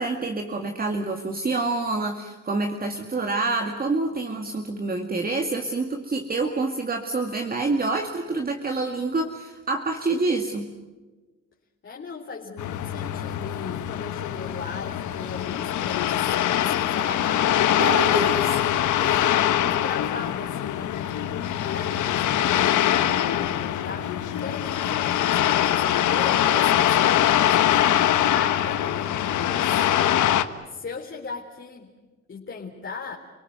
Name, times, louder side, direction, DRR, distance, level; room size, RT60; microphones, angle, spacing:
voice 1, 0.0-10.7 17.8-18.6, right 3 dB, 30° right, 4 dB, 2.2 m, -27 dB
voice 2, 11.8-17.6 19.0-29.9 30.7-31.9 32.3-33.2, left 5 dB, 40° left, -2 dB, 3.8 m, -38 dB
sound 1, 12.6-30.4, left 11 dB, 75° left, 1.4 m, -23 dB
30.0 x 18.5 x 9.5 m, 1.2 s
cardioid pair, 90°, 30 cm